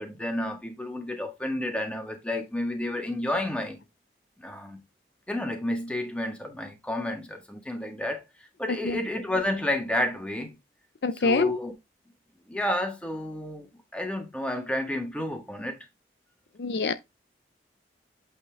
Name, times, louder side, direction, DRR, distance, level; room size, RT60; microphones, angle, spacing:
voice 1, 0.0-3.8 4.4-4.8 5.3-8.2 8.6-10.6 11.1-11.7 12.5-13.7 13.9-15.8, left 1 dB, 5° left, 1.7 m, -31 dB
voice 2, 11.0-11.6 16.6-16.9, left 4 dB, 65° left, 0.5 m, -25 dB
8.3 x 4.2 x 3.5 m
head